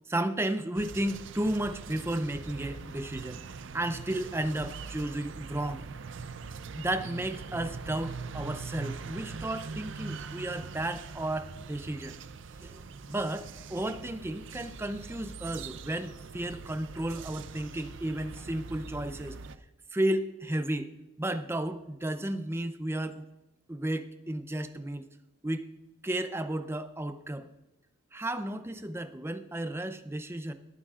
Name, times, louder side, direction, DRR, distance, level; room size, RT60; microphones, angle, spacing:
voice 1, 0.1-3.4 3.7-5.8 6.8-12.2 12.6-19.4 19.9-20.9 21.2-23.2 23.7-25.0 25.4-25.7 26.0-27.5 28.1-30.5, right 1 dB, 10° right, 9 dB, 0.5 m, -33 dB
sound 1, 0.7-19.6, right 4 dB, 60° right, 0.5 m, -42 dB
19.0 x 9.7 x 2.5 m, 0.99 s
head